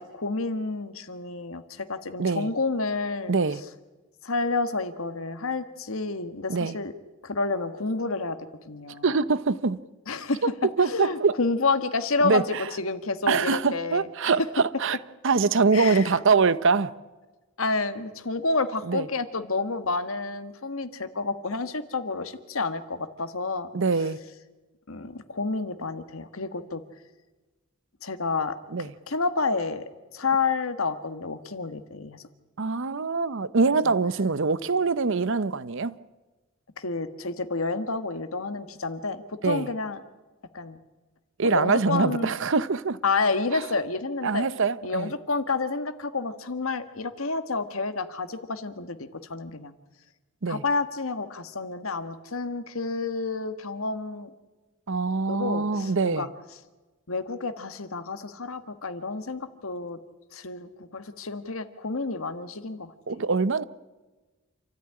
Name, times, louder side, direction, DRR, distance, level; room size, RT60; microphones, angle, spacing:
voice 1, 0.0-3.3 4.2-6.9 7.2-8.4 8.6-9.0 10.1-10.4 10.8-14.1 15.7-16.1 17.6-23.7 24.9-26.8 28.0-29.8 30.1-32.2 36.8-40.0 40.5-40.8 41.4-42.3 43.0-44.5 44.8-49.7 50.5-54.3 55.3-56.3 57.1-60.0 60.3-62.9, left 3 dB, 75° left, 1.6 m, -29 dB
voice 2, 3.3-3.6 6.5-6.7 9.0-9.8 10.8-11.3 12.2-12.6 13.3-15.0 15.2-16.9 18.9-19.1 23.7-24.2 28.7-28.9 32.6-35.9 39.4-39.7 41.4-43.0 43.5-43.6 44.2-45.1 50.4-50.6 54.9-56.3 63.1-63.6, right 4 dB, 65° right, 0.8 m, -24 dB
28.0 x 13.5 x 9.9 m
head